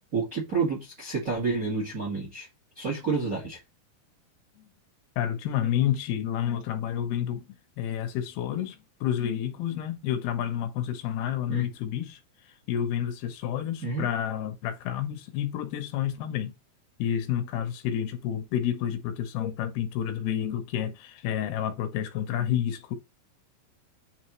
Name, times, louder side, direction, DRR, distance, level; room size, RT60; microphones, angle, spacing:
voice 1, 0.1-2.5 2.7-3.6 11.5-11.7 13.8-14.1, right 4 dB, 35° right, 1.4 m, -29 dB
voice 2, 5.2-7.5 7.8-12.2 12.7-16.5 17.0-22.9, left 10 dB, 80° left, 2.7 m, -29 dB
8.9 x 3.5 x 3.0 m
omnidirectional pair, 4.6 m